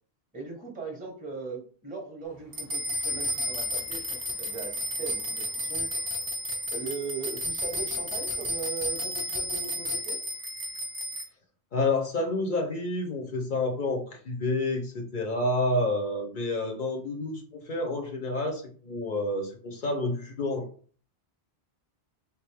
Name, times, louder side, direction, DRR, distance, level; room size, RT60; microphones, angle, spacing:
voice 1, 0.3-6.1 6.7-10.2, right 4 dB, 10° right, 0 dB, 0.8 m, -39 dB
sound 1, 2.5-11.2, equal, 35° right, 0.4 m, -32 dB
voice 2, 11.7-20.7, left 2 dB, 55° left, 2 dB, 0.7 m, -29 dB
3.4 x 2.6 x 3.3 m, 0.42 s
omnidirectional pair, 1.1 m